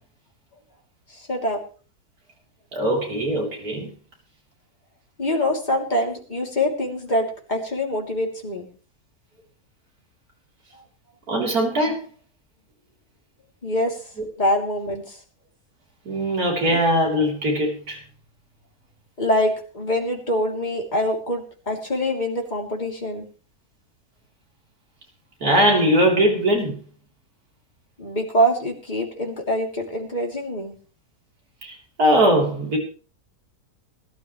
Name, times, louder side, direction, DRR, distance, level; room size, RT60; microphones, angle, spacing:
voice 1, 1.1-1.6 5.2-8.7 13.6-15.2 19.2-23.3 28.0-30.7, equal, 30° left, 0 dB, 3.2 m, -25 dB
voice 2, 2.7-3.9 11.3-12.0 16.1-18.0 25.4-26.8 31.6-32.8, equal, 75° right, 0 dB, 4.1 m, -20 dB
21.0 x 12.0 x 3.2 m, 0.38 s
omnidirectional pair, 1.6 m